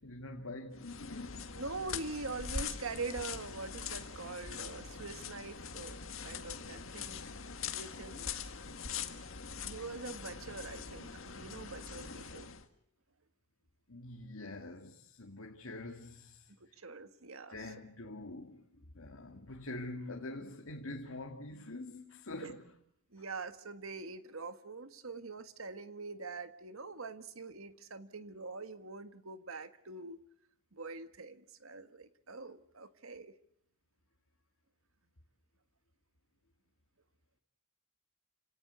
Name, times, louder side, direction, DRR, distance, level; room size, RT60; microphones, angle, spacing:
voice 1, 0.0-1.6 13.9-16.5 17.5-18.7 18.9-22.6, left 2 dB, 85° left, 2.2 m, -45 dB
sound 1, 0.7-12.7, left 6 dB, 70° left, 1.9 m, -43 dB
voice 2, 1.5-7.3 7.7-8.4 9.6-12.5 16.8-17.7 18.0-18.1 22.4-22.5 23.1-30.2 30.7-33.3, right 3 dB, 80° right, 1.7 m, -44 dB
29.5 x 18.0 x 8.2 m
head